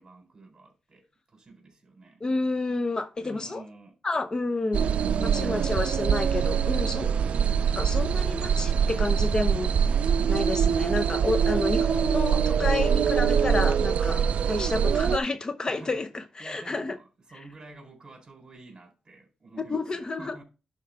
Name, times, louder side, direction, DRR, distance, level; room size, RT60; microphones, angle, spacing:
voice 1, 0.0-2.2 3.2-4.0 5.1-6.0 15.7-16.1 16.4-20.4, right 3 dB, 35° right, 4.0 m, -49 dB
voice 2, 2.2-3.6 4.0-7.2 7.8-9.7 10.3-16.9 19.6-20.3, left 3 dB, 35° left, 0.7 m, -30 dB
sound 1, 4.7-15.2, right 7 dB, 75° right, 0.3 m, -24 dB
11.0 x 4.5 x 3.4 m
cardioid pair, 80°, 2 cm